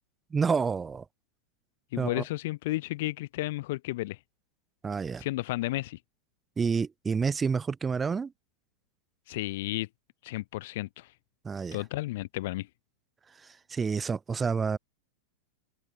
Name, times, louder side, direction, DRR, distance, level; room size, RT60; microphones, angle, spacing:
voice 1, 0.3-1.1 2.0-2.2 4.8-5.2 6.6-8.3 11.4-11.8 13.4-14.8, right 5 dB, 15° right, 2.0 m, -29 dB
voice 2, 1.9-4.2 5.2-6.0 9.3-9.9 10.2-11.1 11.7-12.7, left 18 dB, 50° left, 0.7 m, -32 dB
figure-of-eight pair, 90°, 0 cm